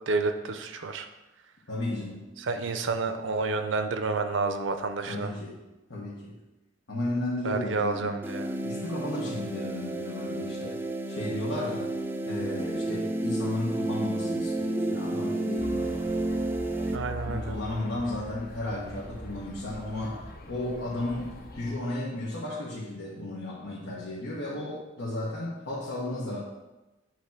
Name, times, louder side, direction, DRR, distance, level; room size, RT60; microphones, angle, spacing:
voice 1, 0.1-1.1 2.4-5.3 7.4-8.5 16.9-17.6, right 3 dB, 70° right, 7 dB, 0.6 m, -29 dB
voice 2, 1.7-2.3 5.1-6.4 6.9-8.2 8.6-11.9 12.3-16.1 17.3-26.4, left 1 dB, 80° left, -6 dB, 1.4 m, -34 dB
sound 1, 8.2-17.0, right 1 dB, 10° right, 0.4 m, -31 dB
sound 2, 15.6-21.7, equal, 50° left, 0.8 m, -42 dB
8.2 x 3.0 x 6.0 m, 1.0 s
head